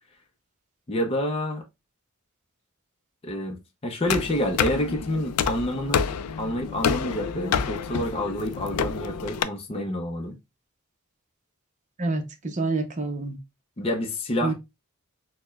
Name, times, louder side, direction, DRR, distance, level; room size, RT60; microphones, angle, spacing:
voice 1, 0.9-1.6 3.2-6.0 6.4-10.4 13.8-14.5, left 1 dB, 25° left, 0.5 m, -28 dB
sound 1, 4.1-9.4, left 7 dB, 90° left, 0.4 m, -28 dB
voice 2, 12.0-13.4 14.4-14.5, right 3 dB, 35° right, 0.6 m, -27 dB
6.3 x 2.1 x 2.3 m
head